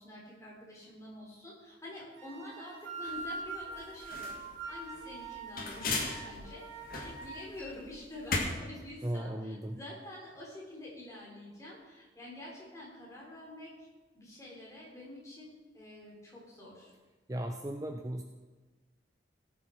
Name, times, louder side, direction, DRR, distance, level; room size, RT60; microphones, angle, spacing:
voice 1, 0.0-4.3 4.7-6.6 7.0-13.9 14.1-16.9, left 1 dB, 15° left, -4 dB, 3.5 m, -47 dB
sound 1, 2.2-7.5, right 3 dB, 75° right, 2.1 m, -43 dB
sound 2, 3.1-8.4, left 3 dB, 50° left, 1.8 m, -38 dB
voice 2, 9.0-9.8 17.3-18.2, right 1 dB, 20° right, 5 dB, 0.5 m, -36 dB
17.5 x 7.3 x 4.4 m, 1.2 s
head